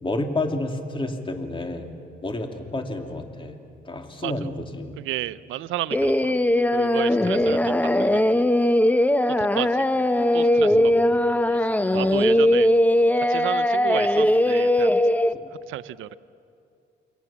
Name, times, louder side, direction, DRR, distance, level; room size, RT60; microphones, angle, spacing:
voice 1, 0.0-1.9 2.2-3.6 3.8-4.9 7.2-7.5 10.7-10.9 11.9-12.1, left 2 dB, 25° left, 4 dB, 3.1 m, -30 dB
voice 2, 4.2-4.6 5.0-8.5 9.4-12.7 13.2-14.9 15.7-16.2, right 14 dB, 85° right, 16 dB, 0.7 m, -33 dB
Singing, 5.9-15.3, left 1 dB, 10° left, 0.9 m, -20 dB
29.5 x 23.0 x 7.3 m, 2.5 s
cardioid pair, 90°, 20 cm